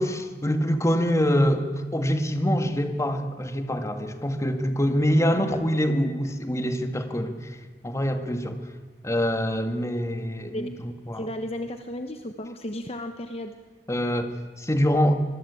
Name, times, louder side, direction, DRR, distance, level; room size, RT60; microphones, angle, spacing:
voice 1, 0.0-7.6 7.8-8.6 9.0-11.3 13.9-15.1, equal, 15° left, 6 dB, 2.0 m, -25 dB
voice 2, 11.2-13.5, left 1 dB, 35° left, 7 dB, 1.2 m, -34 dB
25.0 x 21.5 x 8.6 m, 1.3 s
head